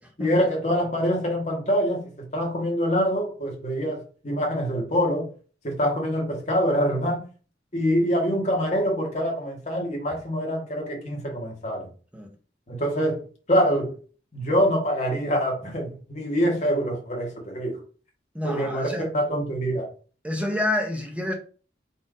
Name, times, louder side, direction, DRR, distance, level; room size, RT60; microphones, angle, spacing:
voice 1, 0.2-5.3 5.6-7.2 7.7-11.9 12.7-13.2 13.5-14.0 14.3-17.8 18.4-19.9, equal, 40° left, 1.3 m, -25 dB
voice 2, 18.3-19.1 20.2-21.3, left 1 dB, 5° right, 0.7 m, -28 dB
4.2 x 2.6 x 4.8 m
head